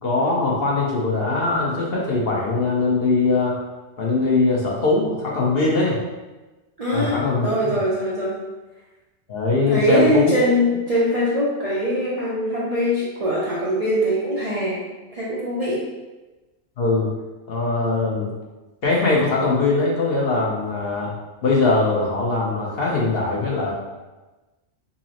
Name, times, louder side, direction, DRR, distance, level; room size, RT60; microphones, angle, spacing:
voice 1, 0.0-3.6 4.0-6.0 6.9-7.8 9.3-10.3 16.8-17.1 17.5-18.3 18.8-21.1 21.4-23.7, left 3 dB, 55° left, -3 dB, 0.9 m, -21 dB
voice 2, 6.8-8.4 9.6-14.8 15.1-15.9, equal, 45° right, -7 dB, 0.5 m, -22 dB
5.3 x 2.0 x 2.8 m, 1.1 s
omnidirectional pair, 1.3 m